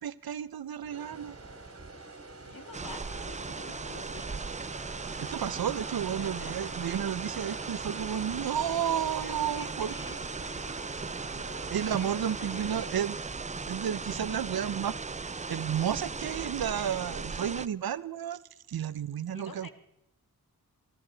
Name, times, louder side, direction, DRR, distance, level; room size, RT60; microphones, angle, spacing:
voice 1, 0.0-1.4 5.2-9.9 11.7-13.1 13.7-15.0 15.5-18.4 18.7-19.7, right 9 dB, 75° right, 17 dB, 0.7 m, -32 dB
sound 1, 0.8-12.8, right 3 dB, 40° right, 2.5 m, -46 dB
voice 2, 1.9-4.4 6.2-6.9 9.1-10.8 11.3-13.0 16.9-17.4 19.3-19.7, left 3 dB, 65° left, 8 dB, 2.0 m, -49 dB
sound 2, 2.7-17.7, right 4 dB, 20° right, 0.4 m, -38 dB
23.5 x 13.5 x 3.9 m, 0.80 s
cardioid pair, 50°, 36 cm